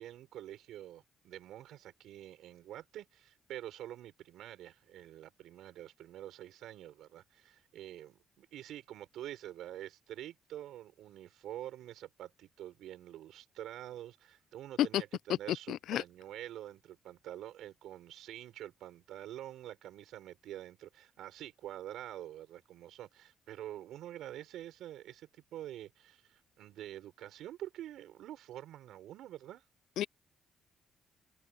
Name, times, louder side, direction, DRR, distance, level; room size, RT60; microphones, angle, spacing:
voice 1, 0.0-29.6, right 12 dB, 80° right, 6.3 m, -47 dB
voice 2, 15.7-16.0 30.0-30.1, left 12 dB, 80° left, 0.4 m, -30 dB
cardioid pair, 90°, 0 cm